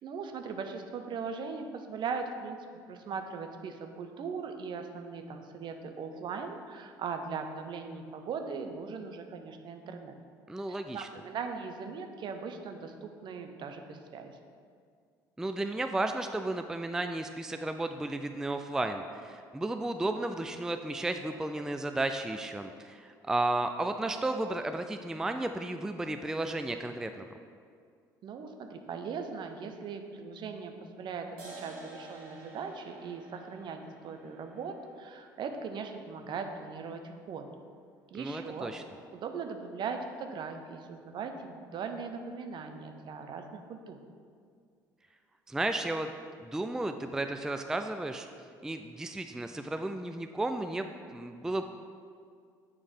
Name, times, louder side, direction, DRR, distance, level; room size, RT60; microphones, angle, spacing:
voice 1, 0.0-2.6 2.9-10.1 10.7-14.4 28.2-37.5 38.1-38.7 39.1-44.0, right 5 dB, 50° right, 6 dB, 0.6 m, -39 dB
voice 2, 10.5-11.1 15.4-27.3 38.2-38.8 45.5-46.1 46.4-48.3 48.6-51.6, right 2 dB, 5° right, 7 dB, 0.3 m, -33 dB
sound 1, 31.4-38.4, right 3 dB, 80° right, 1.7 m, -52 dB
7.1 x 3.3 x 5.3 m, 2.2 s
hypercardioid pair, 60°, 10 cm